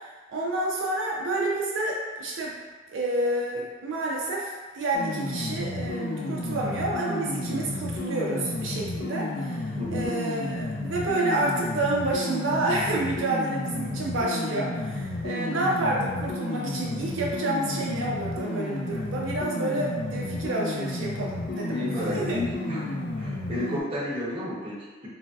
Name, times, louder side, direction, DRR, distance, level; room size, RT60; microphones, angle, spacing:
voice 1, 0.0-2.5 2.9-9.6 9.9-22.4, right 2 dB, 80° right, -3 dB, 0.4 m, -29 dB
sound 1, 4.9-23.8, left 2 dB, 55° left, 0.4 m, -32 dB
voice 2, 9.8-10.1 19.5-19.7 21.7-22.9 23.2-25.1, left 1 dB, 30° right, -8 dB, 0.7 m, -32 dB
3.1 x 2.6 x 2.2 m, 1.3 s
head